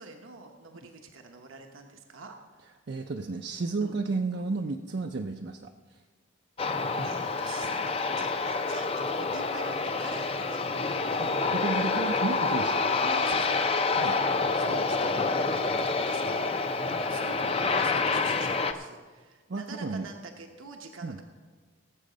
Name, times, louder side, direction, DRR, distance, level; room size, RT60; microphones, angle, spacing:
voice 1, 0.0-2.4 2.6-2.7 3.8-3.9 7.0-8.9 9.2-11.4 13.0-13.7 14.0-21.2, right 3 dB, 75° right, 3 dB, 1.0 m, -45 dB
voice 2, 2.9-6.0 7.0-7.1 11.2-12.8 14.0-14.2 19.5-20.1 21.0-21.2, right 3 dB, 55° right, 4 dB, 0.5 m, -32 dB
Aircraft, 6.6-18.7, left 3 dB, 30° left, 0.5 m, -28 dB
18.0 x 7.6 x 5.1 m, 1.5 s
head